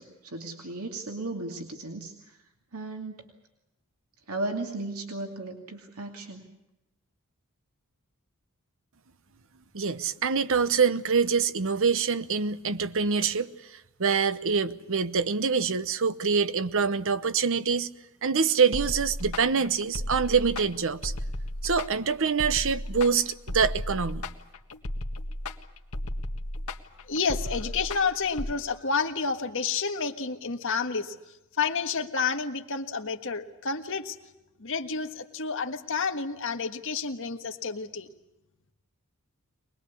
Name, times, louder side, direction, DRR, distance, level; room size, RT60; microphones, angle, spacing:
voice 1, 0.0-2.4 2.7-3.2 4.3-6.5, right 2 dB, 90° right, 2.6 m, -36 dB
voice 2, 9.7-17.9 18.2-21.1 21.6-24.2, right 5 dB, 65° right, 0.9 m, -25 dB
sound 1, 18.7-28.5, left 1 dB, 80° left, 1.6 m, -34 dB
voice 3, 27.1-31.1 31.6-34.2 34.6-38.1, left 5 dB, 60° left, 1.6 m, -30 dB
23.5 x 20.5 x 8.4 m
head